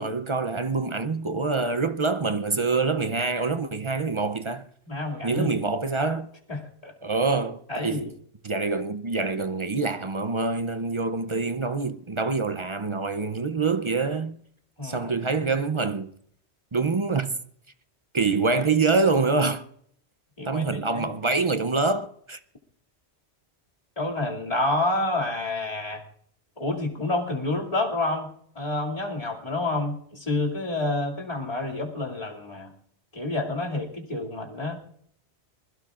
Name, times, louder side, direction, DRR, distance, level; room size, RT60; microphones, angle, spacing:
voice 1, 0.0-4.6 5.2-6.3 7.0-8.1 8.4-14.4 14.8-16.1 16.7-17.3 18.1-19.6 20.4-22.4, right 4 dB, 35° right, 0.5 m, -25 dB
voice 2, 4.9-5.5 6.5-6.9 7.7-8.1 14.8-15.1 20.4-21.1 24.0-26.0 26.6-32.7 33.1-34.8, left 2 dB, 35° left, 2.6 m, -29 dB
26.5 x 21.0 x 2.5 m
omnidirectional pair, 1.1 m